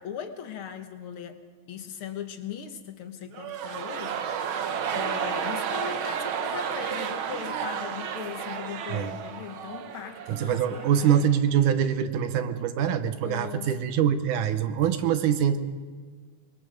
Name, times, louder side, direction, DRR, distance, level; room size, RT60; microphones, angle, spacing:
voice 1, 0.0-1.4 1.7-10.9 13.2-13.7, left 8 dB, 60° left, 7 dB, 1.6 m, -39 dB
sound 1, 3.3-11.4 11.7-11.8, right 7 dB, 70° right, 1.2 m, -32 dB
voice 2, 10.3-15.6, right 9 dB, 90° right, 9 dB, 2.5 m, -24 dB
25.0 x 21.0 x 5.2 m, 1.5 s
omnidirectional pair, 3.4 m